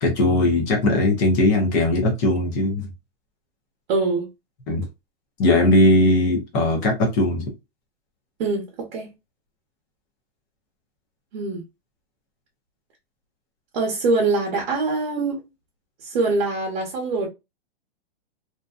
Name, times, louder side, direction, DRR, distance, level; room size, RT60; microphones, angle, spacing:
voice 1, 0.0-2.9 4.7-4.8 5.4-7.4, left 1 dB, 20° left, 0.4 m, -19 dB
voice 2, 3.9-4.3 8.4-9.1 11.3-11.6 13.7-15.4 16.0-17.3, right 3 dB, 45° right, 0.9 m, -23 dB
2.6 x 2.1 x 2.2 m
hypercardioid pair, 160°, 31 cm